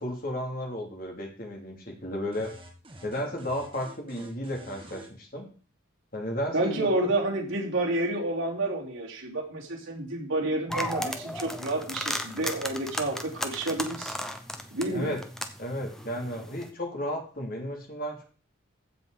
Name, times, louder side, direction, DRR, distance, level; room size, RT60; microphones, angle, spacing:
voice 1, 0.0-2.5 3.0-5.5 6.1-6.9 14.9-15.2 15.6-18.2, equal, 45° left, 1 dB, 2.8 m, -33 dB
sound 1, 2.3-5.1, right 1 dB, 25° right, 1.8 m, -48 dB
voice 2, 6.5-14.2 14.7-15.1, right 2 dB, 80° right, -2 dB, 3.2 m, -29 dB
sound 2, 10.7-16.7, equal, ahead, 0.8 m, -35 dB
15.0 x 5.3 x 5.0 m, 0.40 s
head